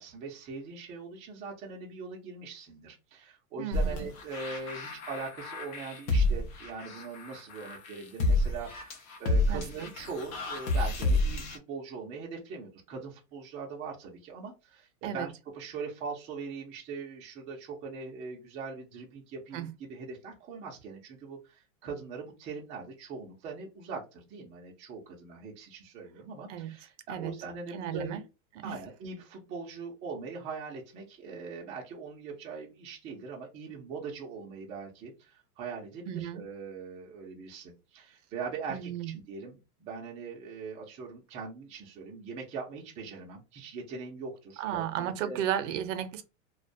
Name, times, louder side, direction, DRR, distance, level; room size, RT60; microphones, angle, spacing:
voice 1, 0.0-28.2 28.6-45.4, right 5 dB, 20° right, 0.3 m, -41 dB
voice 2, 3.6-4.0 9.5-9.9 15.0-15.3 19.5-19.7 26.5-26.7 27.1-27.3 27.7-28.2 28.6-28.8 36.1-36.4 38.7-39.1 44.6-46.2, right 10 dB, 65° right, 0.6 m, -34 dB
sound 1, 3.7-11.6, left 2 dB, 80° left, 0.8 m, -29 dB
2.3 x 2.2 x 2.6 m
supercardioid pair, 140°, 41 cm